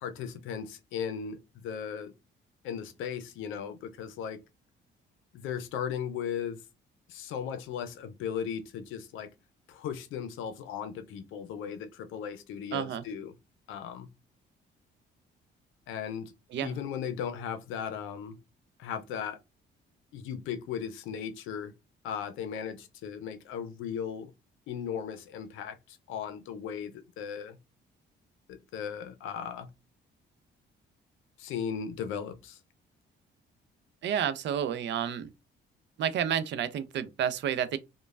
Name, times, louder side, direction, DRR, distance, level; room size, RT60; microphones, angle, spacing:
voice 1, 0.0-2.1 2.6-4.4 5.3-6.6 7.1-9.3 9.7-13.4 13.7-14.1 15.9-16.3 16.6-18.4 18.8-19.4 20.1-21.7 22.0-24.3 24.7-27.6 28.5-29.7 31.4-32.6, left 8 dB, 90° left, 0.5 m, -37 dB
voice 2, 12.7-13.0 16.5-16.7 34.0-35.3 36.0-37.8, right 9 dB, 65° right, 0.4 m, -30 dB
3.1 x 2.2 x 2.3 m
cardioid pair, 90°, 20 cm